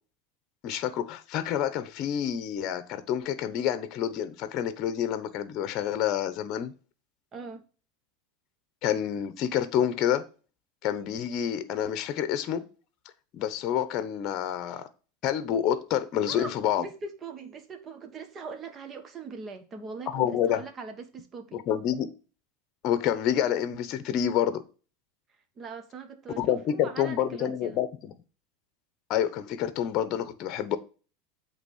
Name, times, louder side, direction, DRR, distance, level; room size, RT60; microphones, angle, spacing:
voice 1, 0.6-6.7 8.8-10.2 10.8-12.6 13.3-14.9 15.2-16.8 20.1-20.6 21.5-22.1 22.8-24.6 26.4-28.1 29.1-30.8, left 10 dB, 45° left, 0.9 m, -28 dB
voice 2, 7.3-7.6 16.3-16.5 16.8-21.6 25.6-27.8, right 4 dB, 30° right, 1.3 m, -41 dB
8.1 x 3.5 x 6.3 m
supercardioid pair, 130°, 0 cm